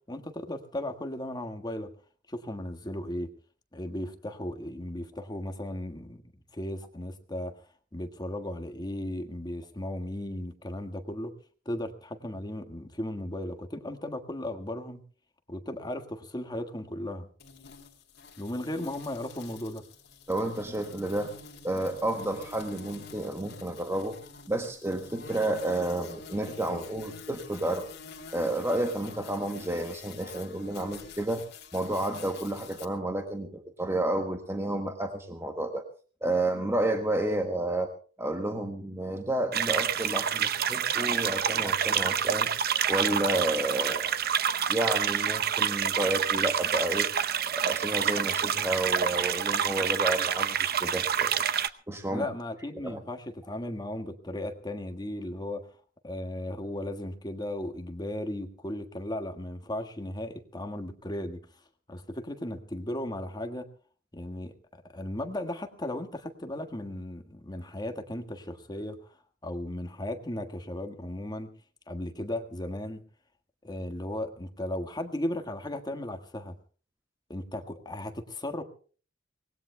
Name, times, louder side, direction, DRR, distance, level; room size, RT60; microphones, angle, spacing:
voice 1, 0.1-1.9 2.3-3.3 3.7-6.2 6.5-7.5 7.9-11.3 11.6-15.0 15.5-17.3 18.4-19.8 52.1-55.7 56.0-61.4 61.9-63.7 64.1-64.5 64.9-69.1 69.4-71.5 71.9-73.0 73.6-76.5 77.3-78.6, left 1 dB, 20° left, 6 dB, 1.6 m, -36 dB
sound 1, 17.4-32.9, left 4 dB, 60° left, 3.0 m, -47 dB
voice 2, 20.3-21.4 21.6-24.2 24.5-27.8 28.3-31.4 31.7-35.8 36.2-37.9 38.2-42.5 42.9-44.1 44.7-47.1 47.5-51.4 51.9-52.2 52.8-53.0, right 1 dB, 15° right, 5 dB, 1.5 m, -31 dB
sound 2, 39.5-51.7, right 8 dB, 55° right, 0.8 m, -27 dB
25.0 x 19.5 x 2.2 m, 0.40 s
head